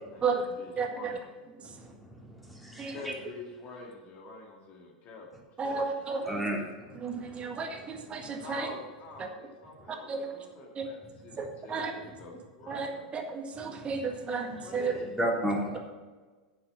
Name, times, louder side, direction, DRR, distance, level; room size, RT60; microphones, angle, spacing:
voice 1, 0.1-1.3 2.9-5.3 5.6-6.4 8.4-13.1 14.6-15.1, left 3 dB, 40° left, 0 dB, 2.2 m, -46 dB
voice 2, 0.8-1.2 2.8-3.0 5.6-6.2 6.9-8.7 9.9-10.3 10.7-10.9 11.4-11.9 12.7-14.9, right 5 dB, 25° right, 4 dB, 1.7 m, -33 dB
voice 3, 2.5-3.1 6.2-6.6 7.2-7.4 13.7-13.8 15.2-15.8, right 1 dB, ahead, -3 dB, 3.0 m, -31 dB
9.5 x 7.2 x 7.0 m, 1.3 s
hypercardioid pair, 90°, 4 cm